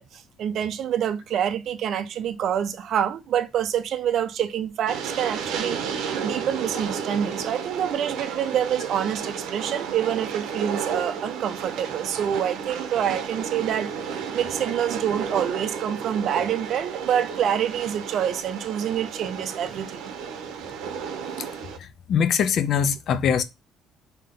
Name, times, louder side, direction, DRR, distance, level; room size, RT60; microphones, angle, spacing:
voice 1, 0.0-20.1, right 9 dB, 55° right, 0.4 m, -27 dB
Train, 4.9-21.8, right 7 dB, 80° right, 0.7 m, -32 dB
voice 2, 21.8-23.4, left 7 dB, 50° left, 0.4 m, -22 dB
3.4 x 2.8 x 3.7 m
cardioid pair, 145°, 0 cm